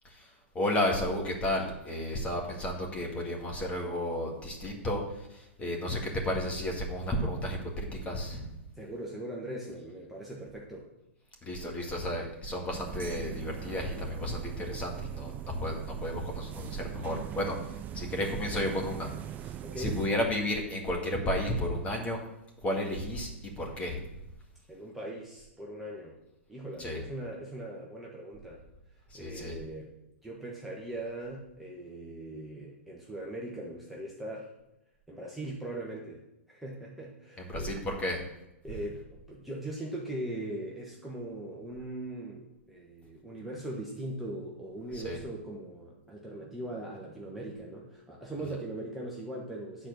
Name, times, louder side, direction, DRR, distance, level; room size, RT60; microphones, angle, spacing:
voice 1, 0.0-8.5 11.4-19.1 19.4-22.2 22.6-24.0 26.8-27.0 29.1-29.5 37.4-38.2 44.9-45.2, left 1 dB, 20° left, 1 dB, 2.0 m, -33 dB
voice 2, 8.7-10.9 19.6-19.9 24.7-26.2 26.5-28.6 29.1-29.9 30.2-34.5 35.1-36.2 36.5-37.8 38.6-49.9, right 1 dB, ahead, -4 dB, 1.3 m, -40 dB
sound 1, 12.7-20.1, right 11 dB, 20° right, 0.3 m, -41 dB
10.0 x 4.4 x 6.4 m, 0.90 s
hypercardioid pair, 130°, 7 cm